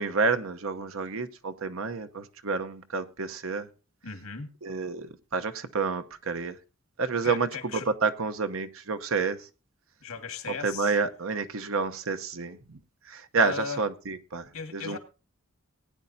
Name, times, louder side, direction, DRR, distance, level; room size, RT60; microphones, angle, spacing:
voice 1, 0.0-3.7 4.6-6.6 7.0-7.5 8.0-9.5 10.6-12.8 13.1-14.4 14.7-15.0, right 4 dB, 70° right, 0.9 m, -29 dB
voice 2, 4.0-4.5 7.2-7.9 10.0-11.0 13.4-13.8 14.5-15.0, left 5 dB, 80° left, 1.9 m, -37 dB
19.0 x 9.7 x 2.7 m
head